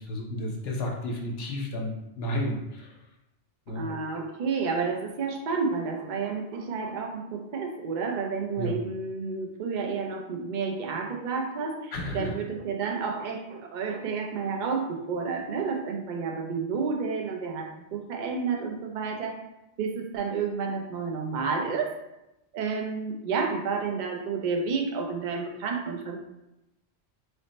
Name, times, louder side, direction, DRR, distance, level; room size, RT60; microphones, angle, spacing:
voice 1, 0.0-3.0 3.7-3.9 8.6-8.8 11.9-12.3, left 1 dB, 65° left, 1 dB, 0.8 m, -32 dB
voice 2, 3.7-19.4 19.8-21.9 22.5-26.2, right 5 dB, 55° right, 1 dB, 0.6 m, -30 dB
3.3 x 2.0 x 4.0 m, 0.91 s
omnidirectional pair, 1.2 m